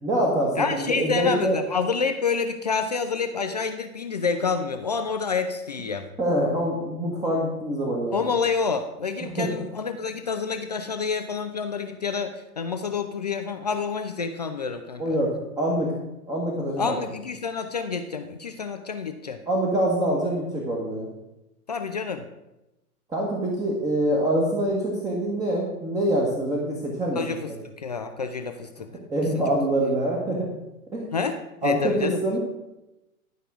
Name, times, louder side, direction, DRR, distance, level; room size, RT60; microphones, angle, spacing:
voice 1, 0.0-1.6 6.2-8.3 9.2-9.5 15.0-16.0 16.3-16.9 19.5-21.1 23.1-27.2 29.1-30.5 30.9-31.1 31.6-32.4, right 1 dB, 10° right, -3 dB, 1.1 m, -25 dB
voice 2, 0.5-6.1 8.1-15.2 16.8-19.4 21.7-22.3 27.2-27.5 27.8-28.9 29.3-29.4 31.1-32.2, left 5 dB, 30° left, 7 dB, 0.4 m, -28 dB
11.5 x 5.5 x 4.8 m, 0.95 s
figure-of-eight pair, 110°, 44 cm